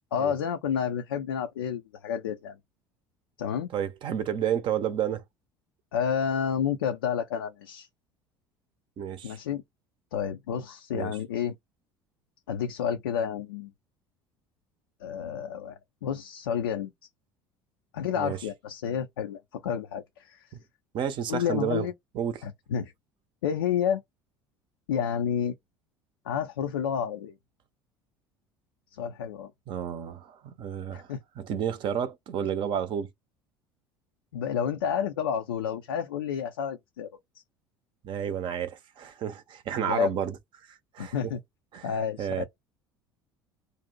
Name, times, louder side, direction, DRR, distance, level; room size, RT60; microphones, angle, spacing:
voice 1, 0.1-2.6 3.4-3.7 5.9-7.9 9.2-9.6 10.1-11.6 12.5-13.7 15.0-16.9 17.9-20.5 21.3-21.9 22.4-22.9 23.4-24.0 24.9-25.6 26.2-27.4 28.9-29.5 30.9-31.2 34.3-37.1 39.8-40.1 41.0-41.4 41.8-42.4, left 8 dB, 75° left, 0.4 m, -30 dB
voice 2, 3.7-5.2 9.0-9.4 10.9-11.1 18.2-18.4 20.9-21.9 22.1-22.4 29.7-31.1 31.4-33.1 38.0-40.4 40.7-41.1 41.7-41.9 42.2-42.4, right 9 dB, 45° right, 0.6 m, -31 dB
2.6 x 2.0 x 3.7 m
figure-of-eight pair, 65°, 12 cm